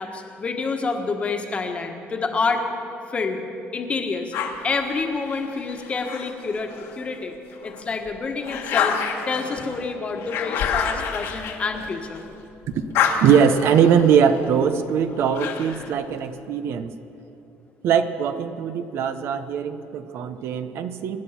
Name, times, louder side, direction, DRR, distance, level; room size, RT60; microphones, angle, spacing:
voice 1, 0.0-2.6 3.1-3.4 3.7-4.3 4.6-7.4 7.6-9.0 9.3-12.2, left 4 dB, 25° left, 4 dB, 1.4 m, -27 dB
sound 1, 4.3-7.0 7.5-12.3 12.6-15.9, left 7 dB, 75° left, 1.7 m, -29 dB
voice 2, 13.2-16.9 17.8-21.2, right 7 dB, 65° right, 10 dB, 0.8 m, -21 dB
24.0 x 10.0 x 5.8 m, 2.8 s
cardioid pair, 150°, 5 cm